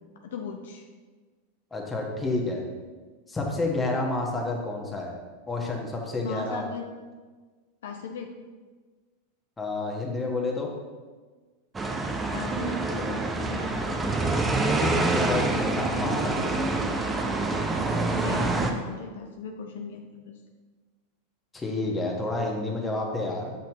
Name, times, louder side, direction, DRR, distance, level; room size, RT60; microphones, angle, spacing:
voice 1, 0.2-0.9 6.2-6.8 7.8-8.3 12.3-14.0 18.1-20.4, left 5 dB, 70° left, 3 dB, 0.6 m, -38 dB
voice 2, 1.7-2.6 3.3-5.1 5.5-6.7 9.6-10.7 14.6-16.9 21.5-23.5, left 2 dB, 15° left, -1 dB, 1.4 m, -30 dB
sound 1, 11.7-18.7, right 2 dB, 20° right, 0.7 m, -26 dB
7.1 x 5.9 x 3.0 m, 1.4 s
hypercardioid pair, 95°, 0 cm